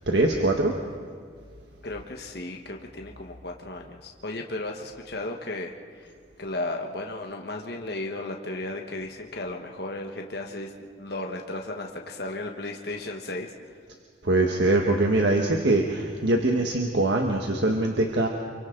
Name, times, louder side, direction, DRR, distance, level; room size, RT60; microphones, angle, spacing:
voice 1, 0.1-0.7 14.2-18.3, right 2 dB, 70° right, 2 dB, 1.5 m, -23 dB
voice 2, 1.8-10.7 11.0-13.5, left 2 dB, 60° left, 2 dB, 1.4 m, -35 dB
28.5 x 24.0 x 3.9 m, 2.1 s
head